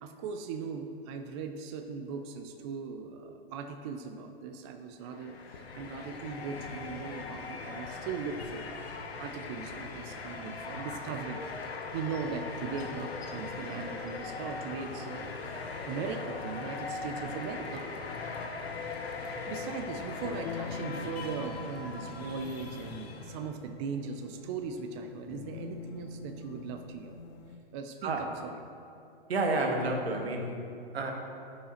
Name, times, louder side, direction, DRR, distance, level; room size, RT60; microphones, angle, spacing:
voice 1, 0.0-5.4 5.7-8.7 9.2-17.9 19.5-27.1 27.7-28.6, right 5 dB, 30° right, 6 dB, 0.4 m, -39 dB
sound 1, 5.1-23.5, left 4 dB, 90° left, 0.9 m, -40 dB
sound 2, 17.7-27.6, left 4 dB, 45° left, 0.5 m, -45 dB
voice 2, 29.3-30.6 30.9-31.1, right 2 dB, 85° right, 2 dB, 1.2 m, -30 dB
11.0 x 5.6 x 2.9 m, 2.6 s
hypercardioid pair, 130°, 30 cm